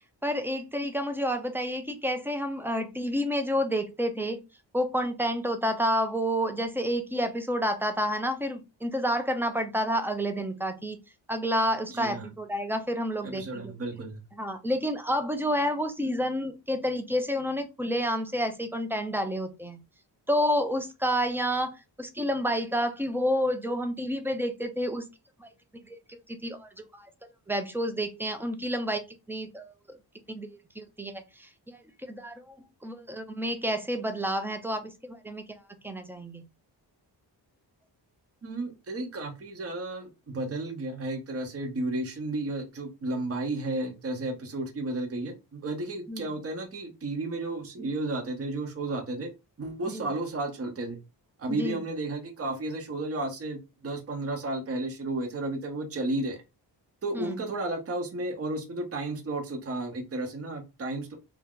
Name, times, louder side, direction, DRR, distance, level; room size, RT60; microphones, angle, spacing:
voice 1, 0.2-4.4 4.7-11.0 11.3-13.7 14.3-19.8 20.3-25.0 25.4-25.5 25.9-27.1 27.5-29.0 29.3-30.0 30.3-32.5 32.8-35.4 35.8-36.4 46.1-46.3 49.9-50.1 51.5-51.8 57.1-57.4, equal, 5° right, 7 dB, 0.4 m, -29 dB
voice 2, 11.9-12.3 13.2-14.2 38.4-49.3 49.6-51.0 51.4-56.4 57.0-61.1, right 2 dB, 35° right, 4 dB, 0.7 m, -33 dB
2.7 x 2.3 x 3.5 m, 0.26 s
wide cardioid pair, 130°, 44 cm